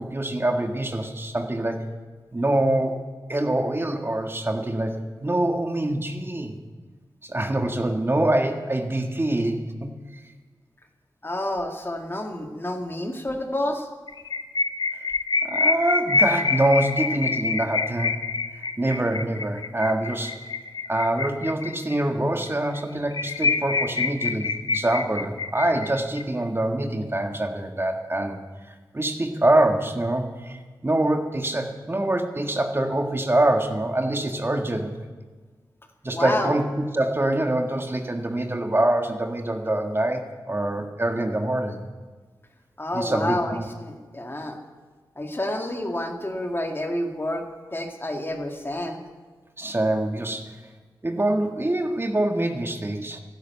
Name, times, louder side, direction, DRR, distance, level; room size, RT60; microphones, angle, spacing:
voice 1, 0.0-1.9 2.3-3.0 3.3-6.5 7.2-9.9 15.4-18.2 18.8-20.4 20.9-28.4 28.7-34.9 36.0-41.8 42.9-43.7 49.6-50.5 51.0-53.2, right 1 dB, 30° right, 4 dB, 1.7 m, -25 dB
voice 2, 11.2-13.9 36.1-36.6 42.8-44.6 45.2-47.4 47.7-49.0, left 1 dB, 30° left, 3 dB, 2.1 m, -29 dB
sound 1, 14.1-22.0 22.4-22.5 22.8-22.9 23.1-26.2, left 4 dB, 60° left, 0.9 m, -26 dB
12.0 x 11.0 x 8.2 m, 1.4 s
cardioid pair, 45°, 8 cm